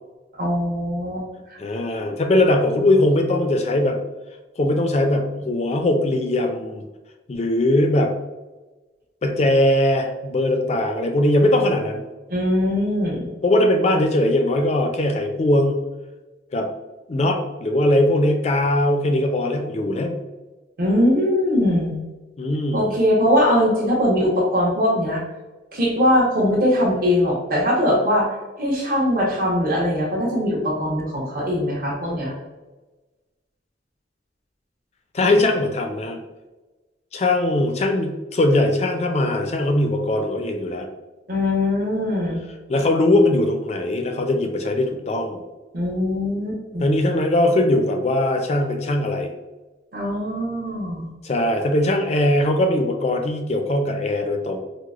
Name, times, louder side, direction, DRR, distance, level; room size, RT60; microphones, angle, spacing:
voice 1, 0.4-1.6 12.3-13.3 20.8-22.0 22.7-25.2 25.7-28.3 28.6-32.3 35.2-35.4 41.3-42.4 45.7-47.0 49.9-51.1, left 1 dB, 50° right, -4 dB, 0.9 m, -21 dB
voice 2, 1.6-4.0 4.6-6.8 7.3-8.1 9.2-12.1 13.4-15.8 16.5-16.7 17.1-20.2 22.4-23.0 35.1-36.2 37.1-40.9 42.7-45.4 46.8-49.3 51.2-54.6, left 1 dB, 35° left, 4 dB, 0.4 m, -20 dB
4.7 x 2.1 x 2.3 m, 1.2 s
head